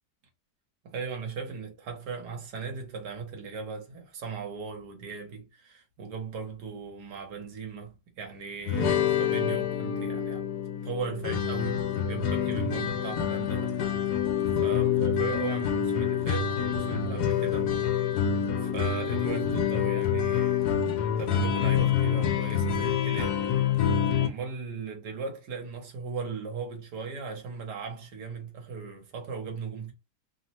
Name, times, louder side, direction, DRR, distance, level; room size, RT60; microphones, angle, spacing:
voice 1, 0.8-10.4 10.8-13.8 14.6-18.1 18.6-20.7 21.2-23.4 24.2-29.9, right 5 dB, 85° right, 1.5 m, -37 dB
sound 1, 8.7-24.3, left 8 dB, 80° left, 1.2 m, -27 dB
3.3 x 2.1 x 2.8 m
omnidirectional pair, 1.7 m